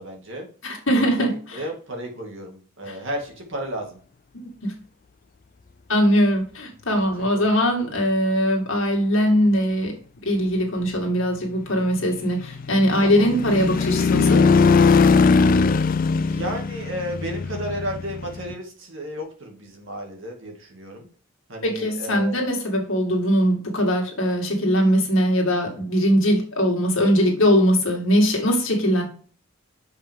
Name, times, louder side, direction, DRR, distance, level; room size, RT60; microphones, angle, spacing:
voice 1, 0.0-0.5 0.9-4.0 7.3-7.5 13.0-13.3 16.3-21.1 21.5-22.4, equal, 55° right, 1 dB, 2.1 m, -33 dB
voice 2, 0.6-1.6 2.9-3.0 4.3-4.7 5.9-10.0 10.2-14.5 21.6-29.0, equal, 65° left, 0 dB, 2.2 m, -21 dB
sound 1, 11.9-18.5, left 4 dB, 40° left, 0.3 m, -20 dB
6.7 x 5.3 x 3.6 m, 0.42 s
head